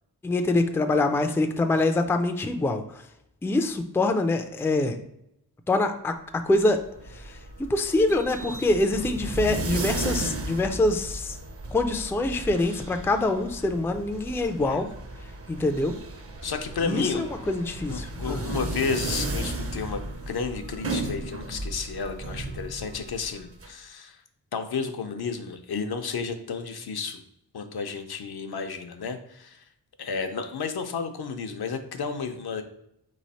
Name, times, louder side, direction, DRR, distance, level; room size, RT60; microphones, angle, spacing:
voice 1, 0.2-2.8 3.4-5.0 5.7-6.8 7.7-11.4 11.7-14.9 15.5-15.9 16.8-18.4, left 2 dB, 5° left, 7 dB, 0.3 m, -25 dB
sound 1, 6.6-23.7, right 2 dB, 35° right, 0.6 m, -35 dB
voice 2, 16.4-17.3 17.9-20.0 20.3-24.2 24.5-27.2 27.5-29.6 30.0-32.6, left 5 dB, 75° left, 6 dB, 0.6 m, -32 dB
4.1 x 3.1 x 4.1 m, 0.77 s
wide cardioid pair, 95°, 39 cm